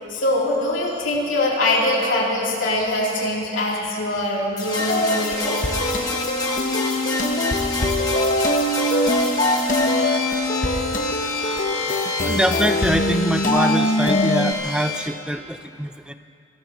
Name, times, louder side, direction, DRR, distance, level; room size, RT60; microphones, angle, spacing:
voice 1, 0.1-5.6 7.9-8.0, left 1 dB, 90° left, -5 dB, 3.3 m, -23 dB
sound 1, 4.6-15.1, left 3 dB, 20° left, 1.7 m, -28 dB
sound 2, 4.9-14.5, left 1 dB, 40° left, 1.0 m, -22 dB
voice 2, 12.2-16.1, equal, 5° right, 9 dB, 0.4 m, -24 dB
25.5 x 18.5 x 3.0 m, 2.5 s
head